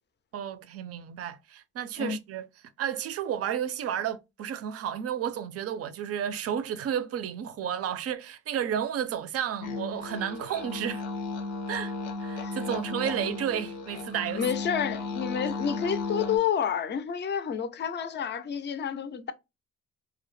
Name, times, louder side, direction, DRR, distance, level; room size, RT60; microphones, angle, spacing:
voice 1, 0.3-2.5 2.8-11.0 11.7-14.4, right 9 dB, 55° right, 0.4 m, -32 dB
sound 1, 9.6-16.4, left 3 dB, 90° left, 0.6 m, -35 dB
voice 2, 12.4-12.8 14.4-19.3, left 8 dB, 35° left, 0.4 m, -30 dB
2.2 x 2.0 x 3.0 m
cardioid pair, 90°, 30 cm